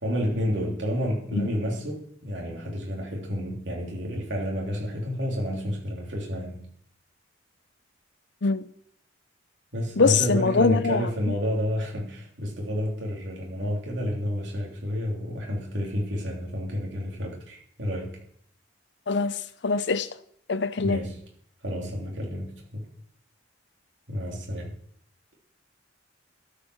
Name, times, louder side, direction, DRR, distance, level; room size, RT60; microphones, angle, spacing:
voice 1, 0.0-6.6 9.7-18.2 20.8-21.2 21.6-22.8 24.1-24.7, equal, 65° right, 3.3 m, -30 dB
voice 2, 10.0-11.3 19.1-19.4 19.6-20.1 20.5-21.0, left 4 dB, 60° left, 0.6 m, -23 dB
13.0 x 5.9 x 6.4 m
head